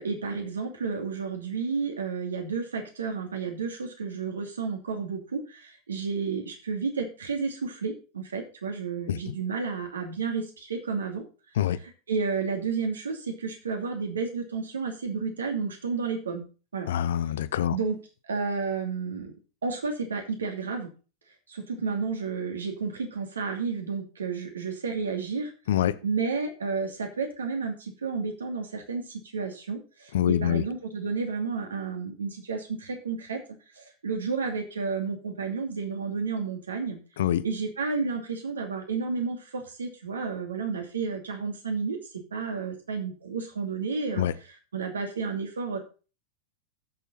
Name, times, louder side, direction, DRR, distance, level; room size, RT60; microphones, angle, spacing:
voice 1, 0.0-11.2 12.1-16.4 16.7-16.9 17.7-18.0 18.3-19.3 19.6-20.9 21.5-25.5 26.0-33.4 33.8-37.0 37.4-42.0 42.3-44.2 44.7-45.8, right 5 dB, 70° right, 2.6 m, -31 dB
voice 2, 16.9-17.8 25.7-26.0 30.1-30.6 37.2-37.4 44.2-44.3, left 10 dB, 60° left, 0.7 m, -25 dB
13.5 x 6.9 x 4.2 m
figure-of-eight pair, 90°, 0 cm